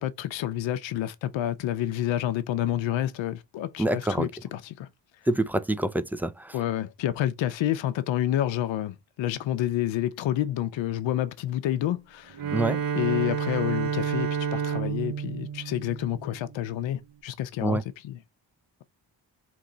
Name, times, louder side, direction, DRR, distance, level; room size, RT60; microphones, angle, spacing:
voice 1, 0.0-4.9 6.5-12.4 12.9-18.2, left 12 dB, 75° left, 0.6 m, -29 dB
voice 2, 3.8-4.3 5.3-6.6 12.5-12.8 17.6-17.8, right 1 dB, 5° right, 0.4 m, -26 dB
Bowed string instrument, 12.3-16.7, right 7 dB, 50° right, 0.7 m, -30 dB
3.7 x 3.1 x 3.8 m
supercardioid pair, 55°, 46 cm